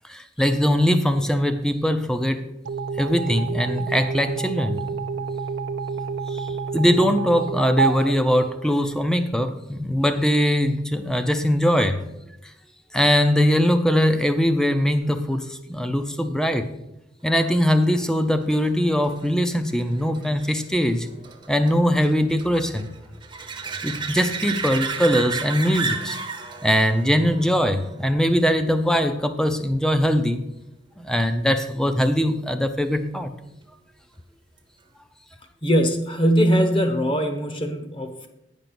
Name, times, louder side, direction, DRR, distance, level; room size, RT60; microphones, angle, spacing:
voice 1, 0.0-2.5 3.0-4.8 6.3-12.0 12.9-16.7 17.2-21.1 21.5-22.9 23.8-26.2 26.6-30.4 31.0-33.3, equal, 5° left, 9 dB, 0.5 m, -21 dB
sound 1, 2.7-9.1, right 5 dB, 80° right, 0.5 m, -29 dB
sound 2, 17.7-28.9 34.6-34.7, right 5 dB, 25° right, 0.8 m, -34 dB
voice 2, 35.6-38.3, equal, 25° left, 7 dB, 0.9 m, -21 dB
9.3 x 5.3 x 6.0 m, 0.87 s
head